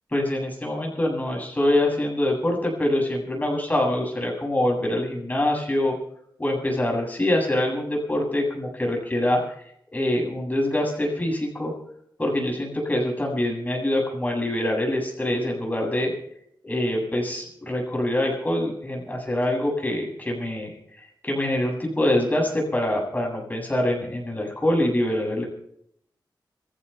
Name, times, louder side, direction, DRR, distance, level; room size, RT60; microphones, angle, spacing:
voice 1, 0.1-6.0 6.4-9.4 9.9-11.7 12.2-16.1 16.6-25.5, left 1 dB, 20° left, 0 dB, 7.8 m, -25 dB
26.5 x 15.5 x 3.5 m, 0.72 s
wide cardioid pair, 100°, 8 cm